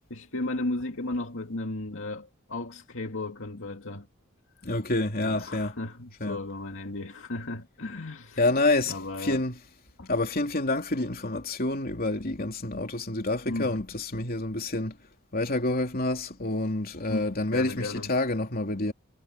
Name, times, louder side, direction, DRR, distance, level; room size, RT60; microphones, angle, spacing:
voice 1, 0.1-4.1 5.2-8.5 8.9-9.4 10.0-10.1 13.5-13.8 17.1-18.1, left 2 dB, 65° left, 2.4 m, -35 dB
voice 2, 4.6-5.8 6.2-6.4 8.4-9.6 10.0-15.0 15.3-18.9, left 2 dB, 45° left, 3.2 m, -28 dB
head